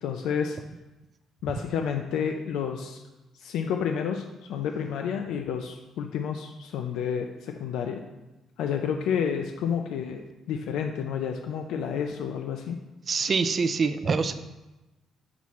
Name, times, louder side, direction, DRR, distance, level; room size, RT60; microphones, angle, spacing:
voice 1, 0.0-0.6 1.4-3.0 3.4-8.0 8.6-12.8, left 7 dB, 80° left, 4 dB, 0.4 m, -30 dB
voice 2, 13.1-14.3, right 4 dB, 30° right, 10 dB, 0.3 m, -25 dB
7.0 x 6.0 x 3.1 m, 1.0 s
cardioid pair, 155°, 0 cm